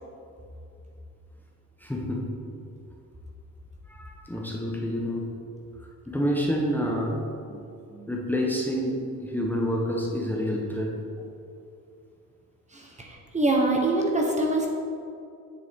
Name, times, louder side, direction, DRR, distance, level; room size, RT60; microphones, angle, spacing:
voice 1, 1.8-2.3 3.9-5.3 6.1-7.2 8.1-11.3, equal, 5° left, -2 dB, 1.1 m, -28 dB
voice 2, 12.7-14.7, right 2 dB, 25° right, 0 dB, 1.2 m, -25 dB
8.2 x 6.9 x 3.7 m, 2.5 s
cardioid pair, 90°, 30 cm